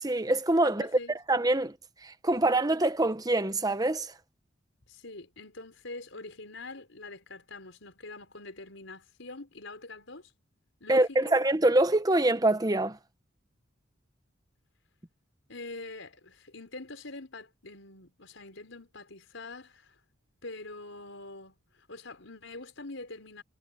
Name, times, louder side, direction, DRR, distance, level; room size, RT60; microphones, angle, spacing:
voice 1, 0.0-0.9 1.3-1.8 2.0-4.1 10.9-13.0, right 2 dB, 20° right, 1.1 m, -25 dB
voice 2, 0.6-1.2 4.9-10.3 10.8-11.4 15.5-20.0 20.4-23.4, left 2 dB, 80° left, 4.7 m, -44 dB
head